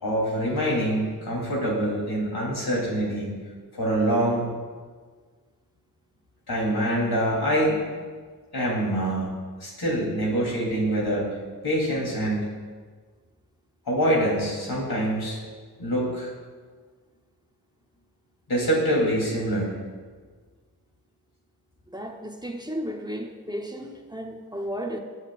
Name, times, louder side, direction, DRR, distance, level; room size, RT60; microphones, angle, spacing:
voice 1, 0.0-3.3 3.7-4.5 6.5-7.8 8.5-11.3 11.6-12.6 13.9-15.4 15.8-16.3 18.5-19.7, right 1 dB, 85° left, -4 dB, 3.5 m, -25 dB
voice 2, 21.9-25.0, equal, 10° right, 2 dB, 1.0 m, -34 dB
20.5 x 8.1 x 2.5 m, 1.5 s
cardioid pair, 55°, 37 cm